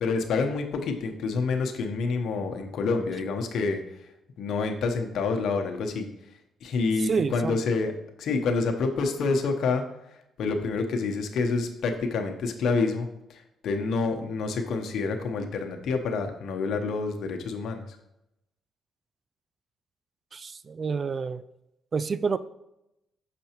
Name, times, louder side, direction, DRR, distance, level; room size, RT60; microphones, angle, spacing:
voice 1, 0.0-3.8 4.4-6.1 6.6-7.9 8.2-9.8 10.4-13.4 13.6-17.9, left 4 dB, 70° left, 4 dB, 0.9 m, -27 dB
voice 2, 7.0-7.6 20.3-21.4 21.9-22.4, right 5 dB, 40° right, 15 dB, 0.3 m, -28 dB
6.6 x 6.0 x 2.9 m, 0.86 s
cardioid pair, 90°, 0 cm